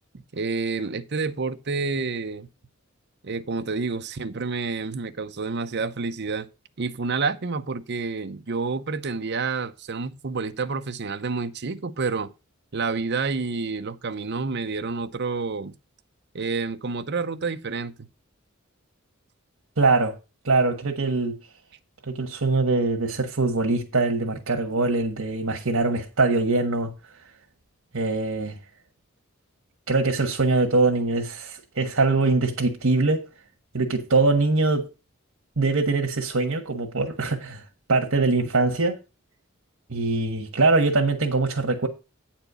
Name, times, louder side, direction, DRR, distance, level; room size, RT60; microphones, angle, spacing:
voice 1, 0.3-2.5 3.2-6.5 6.8-12.3 12.7-15.7 16.3-18.1, right 4 dB, 55° right, 0.7 m, -29 dB
voice 2, 19.8-20.1 20.4-21.4 22.1-26.9 27.9-28.6 29.9-33.3 33.7-34.8 35.6-37.6 37.9-39.0 39.9-41.9, right 3 dB, 80° right, 1.4 m, -23 dB
9.0 x 4.4 x 6.8 m
head